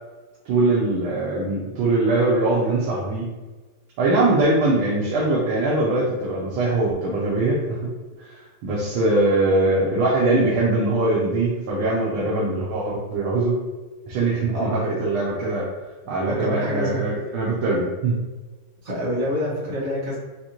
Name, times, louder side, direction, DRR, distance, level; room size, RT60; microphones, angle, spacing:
voice 1, 0.5-3.3 4.0-7.9 8.2-13.6 14.1-15.7 16.1-18.2, right 2 dB, 75° right, -5 dB, 1.5 m, -22 dB
voice 2, 16.3-17.0 18.8-20.2, equal, 45° right, -6 dB, 1.4 m, -26 dB
6.3 x 2.6 x 2.9 m, 1.3 s
omnidirectional pair, 2.4 m